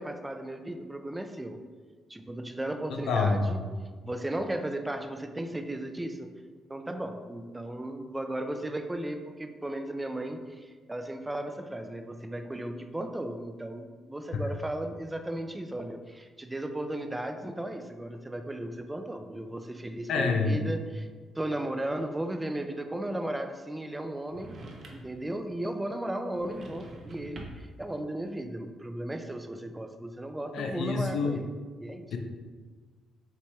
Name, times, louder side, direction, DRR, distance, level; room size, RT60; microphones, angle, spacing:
voice 1, 0.0-1.6 2.1-3.6 4.0-6.3 6.7-21.1 21.4-24.6 24.9-31.5 31.8-32.1, right 1 dB, 15° right, 7 dB, 0.3 m, -35 dB
voice 2, 2.9-3.4 14.3-14.4 20.1-20.6 30.5-31.4 32.1-32.2, left 4 dB, 75° left, 3 dB, 0.5 m, -27 dB
sound 1, 24.3-25.2 26.3-27.8, right 2 dB, 45° right, 0.7 m, -46 dB
4.5 x 2.9 x 3.4 m, 1.5 s
cardioid pair, 90°, 0 cm